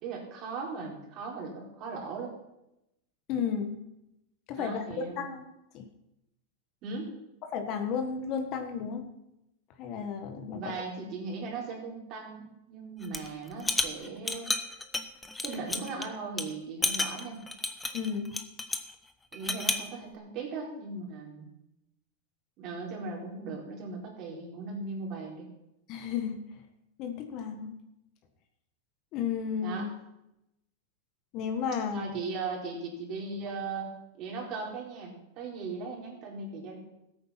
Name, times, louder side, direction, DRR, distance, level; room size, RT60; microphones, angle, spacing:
voice 1, 0.0-2.3 4.6-5.2 6.8-7.1 10.5-14.5 15.4-17.4 19.3-21.5 22.6-25.5 29.6-29.9 31.9-36.8, right 4 dB, 40° right, -1 dB, 4.3 m, -38 dB
voice 2, 3.3-3.8 4.5-5.4 5.7-5.8 7.4-9.1 9.8-10.7 17.9-18.3 25.9-26.4 27.0-27.8 29.1-29.8 31.3-32.1, left 6 dB, 40° left, 7 dB, 1.6 m, -33 dB
sound 1, 13.0-13.3 13.6-16.1 16.4-16.5 16.8-18.9 19.3-19.9, left 2 dB, 10° left, 0.9 m, -31 dB
14.5 x 8.7 x 5.9 m, 0.88 s
supercardioid pair, 140°, 0 cm